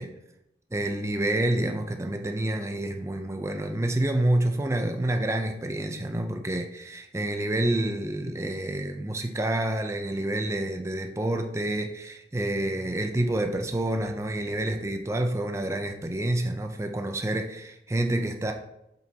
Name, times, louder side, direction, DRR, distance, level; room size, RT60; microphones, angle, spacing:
voice 1, 0.7-18.5, right 1 dB, 15° right, 4 dB, 0.5 m, -28 dB
7.7 x 5.1 x 2.8 m, 0.84 s
head